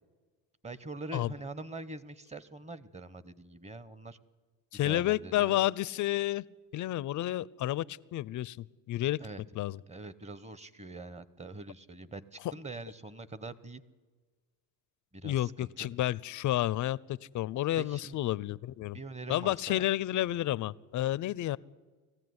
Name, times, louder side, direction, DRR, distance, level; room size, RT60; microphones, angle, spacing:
voice 1, 0.6-4.2 4.8-5.6 9.2-9.4 9.9-13.8 15.1-15.9 17.8-18.2 18.9-19.9, right 2 dB, 15° right, 17 dB, 1.0 m, -44 dB
voice 2, 4.7-6.4 6.7-9.2 9.6-9.8 15.2-19.0 19.3-21.6, left 14 dB, 45° left, 22 dB, 0.5 m, -31 dB
20.0 x 15.0 x 9.6 m, 1.4 s
supercardioid pair, 95°, 44 cm